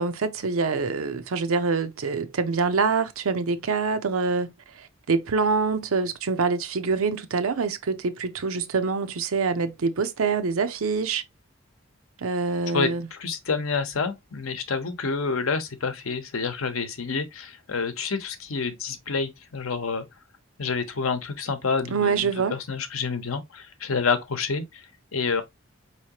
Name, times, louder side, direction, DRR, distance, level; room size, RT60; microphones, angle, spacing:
voice 1, 0.0-4.5 4.8-11.2 12.2-13.1 21.9-22.5, right 4 dB, 80° right, 0.6 m, -25 dB
voice 2, 12.7-20.0 20.6-24.8 25.1-25.4, left 4 dB, 75° left, 0.8 m, -28 dB
4.8 x 3.0 x 2.8 m
head